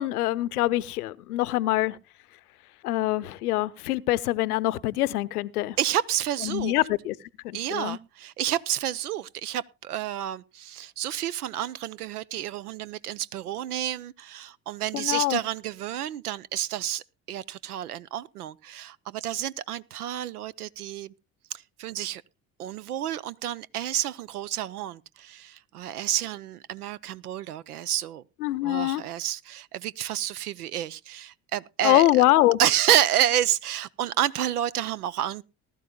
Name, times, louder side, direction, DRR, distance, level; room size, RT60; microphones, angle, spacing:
voice 1, 0.0-2.0 2.8-5.8 6.4-7.1 7.4-8.0 14.9-15.4 28.4-29.0 31.8-32.6, left 16 dB, 80° left, 0.7 m, -24 dB
voice 2, 5.8-6.7 7.5-17.0 17.3-21.1 21.5-22.2 22.6-28.2 28.6-32.0 32.6-35.4, right 11 dB, 90° right, 0.5 m, -29 dB
19.5 x 12.0 x 2.2 m
hypercardioid pair, 55°, 44 cm